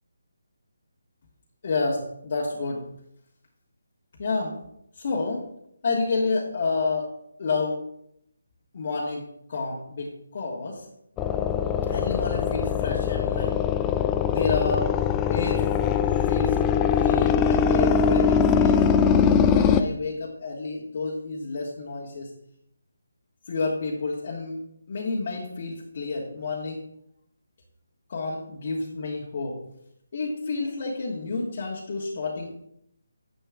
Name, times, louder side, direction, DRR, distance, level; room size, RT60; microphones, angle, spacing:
voice 1, 1.6-2.9 4.2-4.5 5.0-5.5 5.8-7.1 7.4-7.8 8.7-10.8 11.9-13.6 14.3-14.9 15.3-15.7 16.3-16.6 16.9-22.3 23.5-24.6 24.9-26.8 28.1-29.6 30.1-32.6, left 3 dB, 45° left, -4 dB, 1.5 m, -29 dB
sound 1, 11.2-19.8, left 7 dB, 15° left, 0.3 m, -22 dB
10.0 x 7.9 x 2.4 m, 0.74 s
figure-of-eight pair, 150°, 0 cm